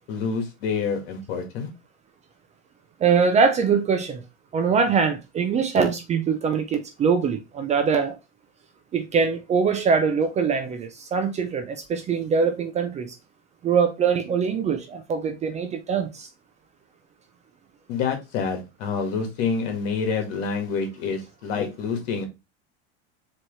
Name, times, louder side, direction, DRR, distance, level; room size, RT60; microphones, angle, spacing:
voice 1, 0.1-1.7 17.9-22.2, left 5 dB, 65° left, 1.7 m, -27 dB
voice 2, 3.0-4.2 4.5-8.1 8.9-13.1 13.6-16.3, right 6 dB, 20° right, 0.4 m, -23 dB
4.5 x 3.1 x 3.0 m
supercardioid pair, 140°, 33 cm